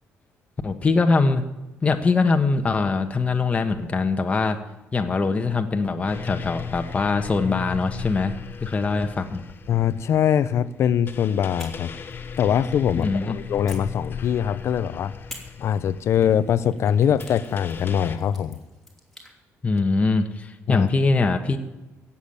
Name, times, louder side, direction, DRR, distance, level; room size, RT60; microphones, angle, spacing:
voice 1, 0.6-1.4 1.8-4.6 4.9-9.4 13.0-13.4 19.6-21.6, left 3 dB, 25° left, 5 dB, 1.3 m, -22 dB
sound 1, 6.1-18.2, left 6 dB, 40° left, 1.1 m, -37 dB
voice 2, 9.7-11.9 12.4-15.1 15.6-18.6 20.7-20.9, left 9 dB, 60° left, 14 dB, 0.7 m, -22 dB
sound 2, 11.6-13.1 13.7-14.7 15.3-19.3, left 1 dB, 5° left, 2.9 m, -47 dB
16.0 x 7.3 x 8.7 m, 1.0 s
cardioid pair, 120°, 5 cm